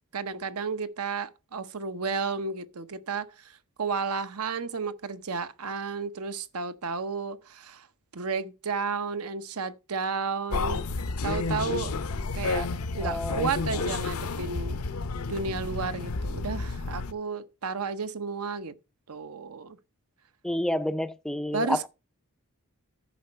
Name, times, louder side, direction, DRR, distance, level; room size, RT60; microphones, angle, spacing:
voice 1, 0.1-7.9 8.1-10.8 11.2-11.9 12.3-12.7 12.9-14.8 15.3-18.7 19.1-19.8 21.5-21.9, right 5 dB, 75° right, 0.8 m, -32 dB
sound 1, 10.5-17.1, left 3 dB, 75° left, 0.7 m, -31 dB
voice 2, 13.0-13.5 20.4-21.9, left 1 dB, 5° left, 0.4 m, -29 dB
10.0 x 5.3 x 5.5 m
head